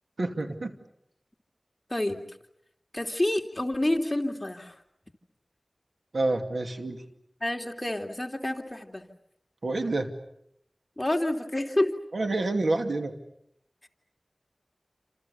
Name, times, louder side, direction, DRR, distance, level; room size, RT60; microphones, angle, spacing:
voice 1, 0.2-0.7 6.1-7.0 9.6-10.1 12.1-13.1, right 2 dB, 90° right, 6 dB, 2.5 m, -28 dB
voice 2, 1.9-2.2 2.9-4.8 7.4-9.0 11.0-11.9 13.8-13.9, left 1 dB, 20° left, 3 dB, 3.1 m, -28 dB
29.0 x 27.0 x 6.9 m, 0.75 s
wide cardioid pair, 65°, 0 cm